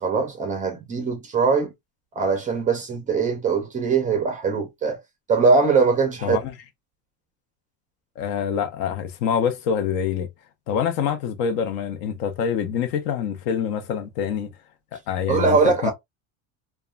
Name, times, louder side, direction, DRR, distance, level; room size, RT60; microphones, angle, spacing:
voice 1, 0.0-1.7 2.2-5.0 5.3-6.4 15.3-15.9, right 4 dB, 20° right, 0.4 m, -21 dB
voice 2, 6.2-6.5 8.2-10.3 10.7-14.5 14.9-15.9, left 8 dB, 60° left, 0.6 m, -25 dB
2.9 x 2.2 x 2.3 m
cardioid pair, 165°, 41 cm